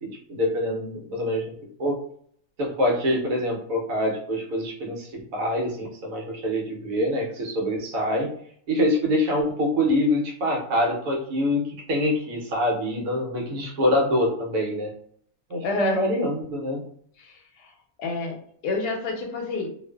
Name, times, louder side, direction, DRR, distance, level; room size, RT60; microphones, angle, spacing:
voice 1, 0.0-1.5 1.8-2.0 2.6-8.3 8.7-14.9 15.5-16.8, left 1 dB, 70° right, -1 dB, 1.0 m, -25 dB
voice 2, 15.6-16.0 17.2-17.7 18.0-18.4 18.6-19.7, left 3 dB, 85° left, 3 dB, 1.1 m, -28 dB
2.5 x 2.4 x 2.2 m, 0.63 s
omnidirectional pair, 1.6 m